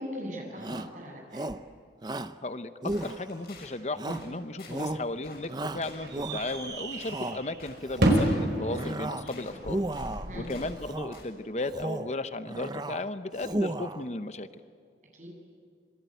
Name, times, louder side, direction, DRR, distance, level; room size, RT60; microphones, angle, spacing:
voice 1, 0.0-1.5 10.3-10.6 15.1-15.3, equal, 45° right, 0 dB, 8.0 m, -39 dB
Shout, 0.6-1.0 1.3-1.7 2.0-2.4 2.8-3.5 4.0-4.4 4.7-5.1 5.5-6.6 7.0-7.4 7.8-8.3 8.7-9.3 9.6-10.3 10.8-11.2 11.6-12.1 12.5-13.0 13.3-14.0, right 1 dB, 25° right, 0.7 m, -34 dB
voice 2, 2.4-9.8 10.3-14.5, left 2 dB, 40° left, 11 dB, 0.8 m, -35 dB
sound 1, 2.9-3.7 4.1-4.3 4.6-4.9 5.2-5.5 5.8-6.1 6.4-6.6 6.9-8.4 8.7-9.6 9.9-10.8 11.1-11.3, left 3 dB, 60° left, 7.1 m, -50 dB
sound 2, 4.7-10.7, right 1 dB, 85° right, 4.8 m, -31 dB
26.5 x 23.5 x 9.3 m, 2.3 s
head